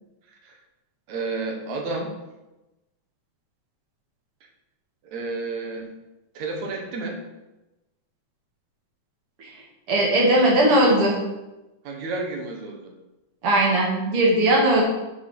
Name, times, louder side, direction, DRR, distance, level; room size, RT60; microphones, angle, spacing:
voice 1, 1.1-2.1 5.0-5.9 6.3-7.2 11.8-12.9, right 3 dB, 70° right, 1 dB, 2.8 m, -31 dB
voice 2, 9.9-11.2 13.4-14.8, right 1 dB, 50° right, -2 dB, 2.9 m, -19 dB
9.3 x 5.5 x 6.6 m, 1.0 s
omnidirectional pair, 3.4 m